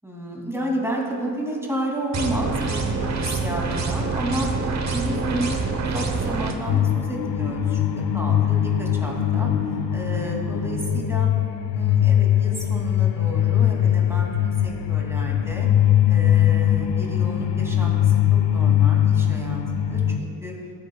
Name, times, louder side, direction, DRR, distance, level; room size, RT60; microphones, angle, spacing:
voice 1, 0.0-4.5 4.9-7.8 8.1-9.5 9.9-11.3 11.7-15.7 16.1-20.5, equal, 5° right, -2 dB, 2.6 m, -31 dB
sound 1, 2.1-6.5, right 4 dB, 40° right, 1.1 m, -26 dB
sound 2, 6.7-20.2, left 10 dB, 80° left, 0.7 m, -21 dB
19.0 x 9.5 x 2.3 m, 2.3 s
cardioid pair, 95°, 43 cm